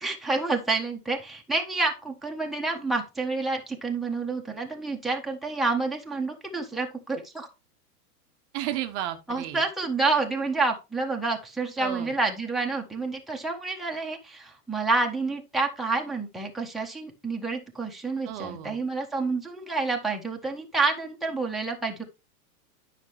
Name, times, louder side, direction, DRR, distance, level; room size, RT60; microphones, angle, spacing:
voice 1, 0.0-7.5 9.3-22.0, right 3 dB, ahead, 1.3 m, -28 dB
voice 2, 8.5-9.7 11.8-12.1 18.3-18.8, right 12 dB, 50° right, 0.9 m, -33 dB
9.5 x 5.9 x 3.1 m
hypercardioid pair, 115°, 47 cm